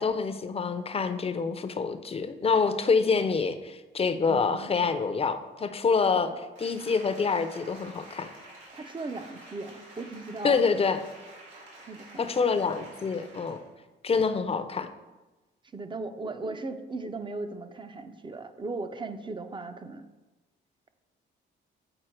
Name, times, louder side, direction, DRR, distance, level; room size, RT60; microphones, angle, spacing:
voice 1, 0.0-6.3 6.6-8.3 10.4-11.0 12.2-13.6 14.0-14.9, left 5 dB, 30° left, 10 dB, 0.6 m, -26 dB
voice 2, 4.3-4.8 6.3-6.4 8.7-10.6 11.9-12.3 15.7-20.1, right 3 dB, 25° right, 9 dB, 0.6 m, -37 dB
Applause, 6.5-13.7 14.1-14.2, right 2 dB, 75° right, 2.6 m, -49 dB
7.7 x 4.5 x 4.5 m, 1.2 s
cardioid pair, 90°, 20 cm